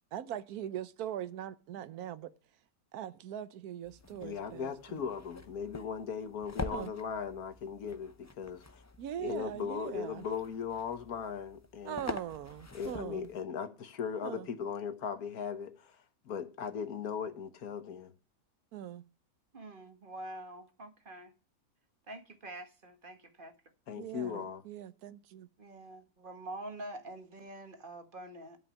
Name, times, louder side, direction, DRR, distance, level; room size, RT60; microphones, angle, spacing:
voice 1, 0.1-2.3 2.9-5.0 6.7-6.9 9.0-10.2 11.8-13.3 14.2-14.5 18.7-19.0 24.0-25.5, right 10 dB, 90° right, 1.2 m, -41 dB
sound 1, 3.8-13.4, left 2 dB, 20° left, 0.4 m, -46 dB
voice 2, 4.2-8.8 9.2-12.1 12.7-16.0 16.2-18.1 23.9-24.6, left 6 dB, 85° left, 1.7 m, -38 dB
voice 3, 19.5-21.3 22.1-23.5 24.3-24.4 25.6-28.6, right 1 dB, 35° right, 1.5 m, -46 dB
12.0 x 5.5 x 8.5 m
omnidirectional pair, 1.5 m